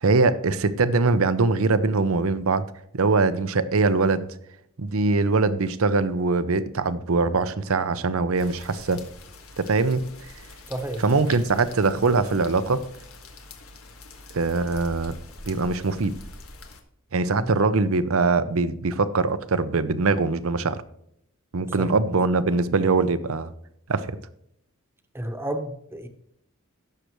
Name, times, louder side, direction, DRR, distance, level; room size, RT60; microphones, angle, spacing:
voice 1, 0.0-2.7 2.9-4.3 4.8-9.0 9.6-10.0 11.0-12.8 14.3-15.2 15.5-16.1 17.1-20.8 21.5-23.5 23.9-24.2, right 3 dB, 75° right, 13 dB, 0.7 m, -22 dB
sound 1, 8.3-16.8, left 2 dB, 80° left, 1.5 m, -44 dB
voice 2, 10.7-11.0 17.4-17.6 21.8-21.9 25.1-26.1, right 1 dB, 10° right, 6 dB, 1.1 m, -31 dB
16.5 x 6.6 x 3.1 m, 0.73 s
head